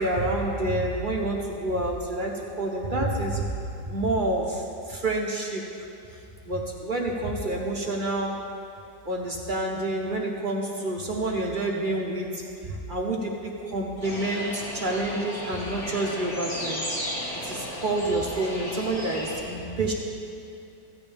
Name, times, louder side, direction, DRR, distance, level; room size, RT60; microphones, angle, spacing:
voice 1, 0.0-2.3 2.6-3.4 3.9-5.6 6.5-8.3 9.1-12.3 12.6-16.8 17.4-19.9, right 2 dB, 40° right, -1 dB, 0.7 m, -28 dB
sound 1, 14.0-19.4, left 1 dB, 70° left, 3.0 m, -34 dB
15.0 x 8.8 x 3.5 m, 2.6 s
omnidirectional pair, 2.0 m